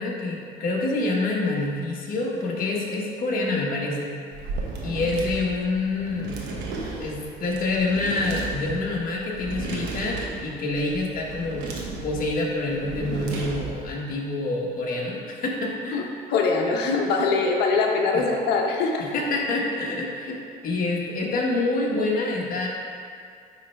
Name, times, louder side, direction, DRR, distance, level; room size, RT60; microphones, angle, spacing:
voice 1, 0.0-4.2 4.8-6.4 7.0-11.7 12.0-16.1 19.0-20.4 20.6-22.7, left 2 dB, 55° left, -2 dB, 1.4 m, -27 dB
sound 1, 4.3-13.9, right 3 dB, 85° right, 1.1 m, -34 dB
voice 2, 16.3-19.1, left 4 dB, 75° left, 1 dB, 1.0 m, -22 dB
9.7 x 3.3 x 4.6 m, 2.2 s
cardioid pair, 110°, 17 cm